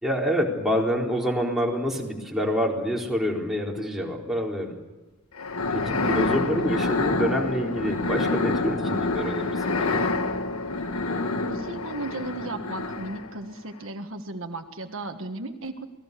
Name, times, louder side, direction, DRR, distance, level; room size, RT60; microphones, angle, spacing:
voice 1, 0.0-4.8 5.7-10.0, equal, ahead, -2 dB, 4.1 m, -27 dB
sound 1, 5.4-13.4, left 3 dB, 75° left, 1.7 m, -27 dB
voice 2, 11.5-15.9, right 2 dB, 60° right, 6 dB, 1.6 m, -35 dB
28.0 x 20.0 x 6.8 m, 1.1 s
head